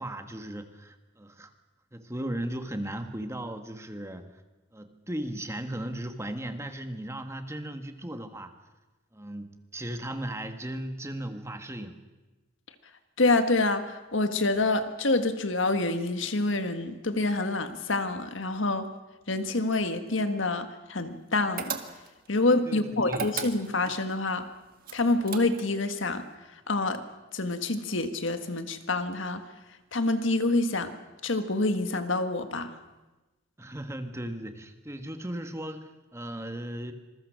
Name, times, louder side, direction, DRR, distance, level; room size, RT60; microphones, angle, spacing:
voice 1, 0.0-1.5 1.9-4.3 4.7-8.5 9.1-12.0 22.6-23.3 33.6-36.9, right 1 dB, 15° right, 7 dB, 1.5 m, -36 dB
voice 2, 13.2-18.9 19.3-21.8 22.3-24.5 24.9-26.2 26.5-27.0 27.3-29.4 29.9-30.9 31.2-32.7, left 2 dB, 70° left, 8 dB, 1.7 m, -27 dB
sound 1, 21.6-22.3 23.1-24.0 24.8-25.8, right 7 dB, 45° right, 1.7 m, -35 dB
26.5 x 21.5 x 6.5 m, 1.1 s
head